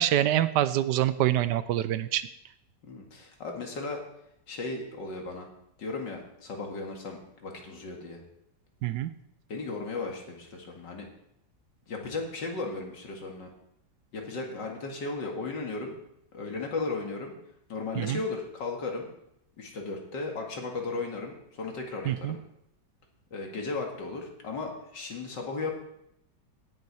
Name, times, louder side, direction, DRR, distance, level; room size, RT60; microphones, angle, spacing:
voice 1, 0.0-2.3 8.8-9.1 18.0-18.2 22.1-22.4, right 12 dB, 80° right, 14 dB, 1.2 m, -26 dB
voice 2, 2.8-4.0 4.5-5.5 5.8-8.2 9.5-11.1 11.9-13.5 14.1-15.9 16.3-17.3 17.7-19.1 19.6-22.4 23.3-25.7, left 3 dB, 85° left, 1 dB, 2.6 m, -35 dB
17.0 x 6.9 x 4.8 m, 0.77 s
omnidirectional pair, 1.9 m